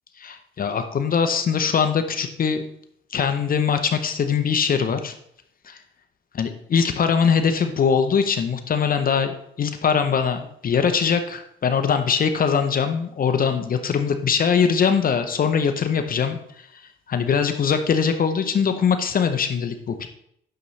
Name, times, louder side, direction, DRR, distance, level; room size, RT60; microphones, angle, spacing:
voice 1, 0.2-2.6 3.1-5.1 5.7-5.8 6.3-16.7 17.1-20.1, left 6 dB, 45° left, 7 dB, 0.8 m, -22 dB
9.0 x 6.8 x 3.2 m, 0.71 s
cardioid pair, 90°, 20 cm